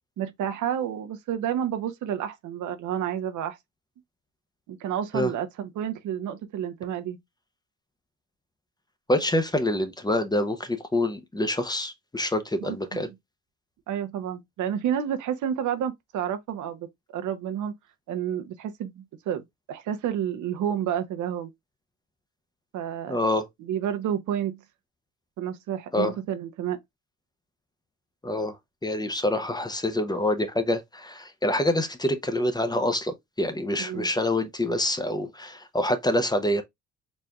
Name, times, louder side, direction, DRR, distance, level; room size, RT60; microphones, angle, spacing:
voice 1, 0.2-3.6 4.7-7.2 12.6-13.0 13.9-17.7 18.1-21.5 22.7-23.2 23.6-24.6 25.4-26.8 33.8-34.1, right 9 dB, 75° right, 0.7 m, -30 dB
voice 2, 9.1-13.1 23.1-23.5 25.9-26.1 28.2-28.6 28.8-36.6, left 1 dB, 15° left, 0.6 m, -26 dB
4.1 x 3.3 x 2.3 m
cardioid pair, 90°, 30 cm